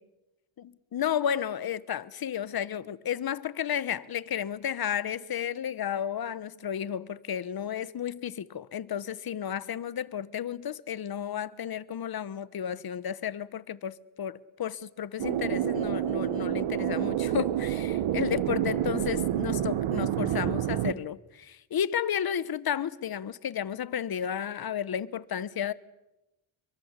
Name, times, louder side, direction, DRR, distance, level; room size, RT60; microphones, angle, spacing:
voice 1, 0.6-25.7, left 9 dB, 45° left, 1.2 m, -32 dB
sound 1, 15.2-20.9, right 11 dB, 85° right, 1.4 m, -28 dB
28.5 x 23.5 x 8.3 m
cardioid pair, 125°, 49 cm